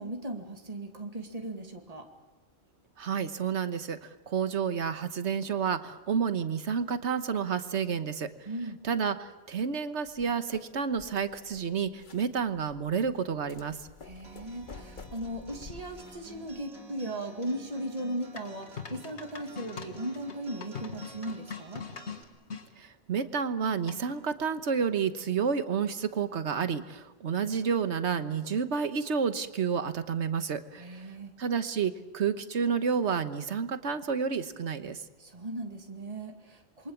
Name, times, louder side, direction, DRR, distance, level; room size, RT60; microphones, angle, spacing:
voice 1, 0.0-2.1 8.5-8.8 14.0-21.8 30.8-31.3 35.2-36.9, right 1 dB, 35° right, 3 dB, 2.3 m, -37 dB
voice 2, 3.0-8.3 8.8-13.8 22.8-30.9 31.4-35.0, right 6 dB, 85° right, 10 dB, 1.4 m, -30 dB
sound 1, 10.0-16.6, left 3 dB, 45° left, 1.4 m, -50 dB
Acoustic guitar, 14.2-22.2, right 2 dB, 65° right, 3.6 m, -52 dB
sound 2, 18.4-22.7 23.9-24.3, left 6 dB, 80° left, 2.0 m, -42 dB
28.0 x 23.5 x 7.2 m, 1.1 s
omnidirectional pair, 1.1 m